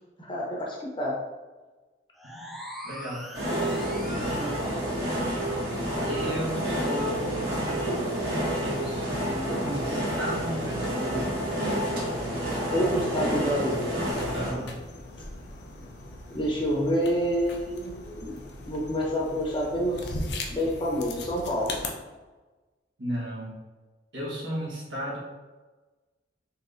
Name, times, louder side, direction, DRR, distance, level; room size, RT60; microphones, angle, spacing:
voice 1, 0.2-1.1 12.7-13.9 16.3-21.7, equal, 30° left, -3 dB, 0.8 m, -28 dB
sound 1, 2.2-4.9, equal, ahead, 0.4 m, -43 dB
voice 2, 2.8-3.3 4.0-4.6 6.0-7.9 8.6-11.5 14.3-14.8 23.0-23.6 24.1-25.2, equal, 80° right, -5 dB, 1.3 m, -35 dB
sound 2, 3.3-14.5, right 1 dB, 60° right, 1.5 m, -29 dB
sound 3, 14.1-21.9, left 2 dB, 65° left, 0.6 m, -39 dB
4.2 x 3.3 x 2.6 m, 1.3 s
head